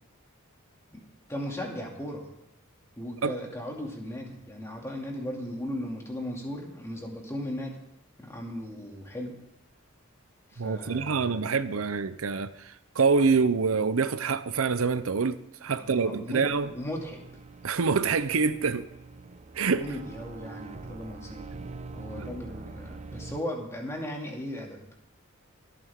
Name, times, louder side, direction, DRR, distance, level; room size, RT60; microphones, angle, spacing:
voice 1, 1.3-2.3 3.0-7.8 8.2-9.4 10.5-11.4 15.7-17.2 19.7-21.6 21.9-24.8, left 1 dB, 15° left, 2.5 m, -37 dB
voice 2, 10.6-16.7 17.6-18.9 19.5-19.8 22.2-22.3, right 5 dB, 75° right, 0.7 m, -26 dB
sound 1, 16.1-23.4, right 3 dB, 35° right, 0.6 m, -44 dB
25.0 x 8.8 x 3.7 m
head